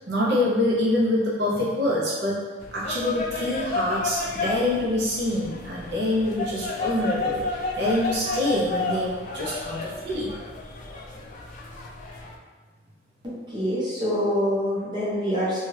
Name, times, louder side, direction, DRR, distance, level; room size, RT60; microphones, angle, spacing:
voice 1, 0.1-2.4 2.7-10.3, left 1 dB, 65° right, -6 dB, 0.6 m, -25 dB
sound 1, 2.6-12.3, left 3 dB, 40° left, 0.3 m, -32 dB
voice 2, 13.2-15.6, equal, 25° right, -8 dB, 0.8 m, -26 dB
2.8 x 2.3 x 3.1 m, 1.4 s
head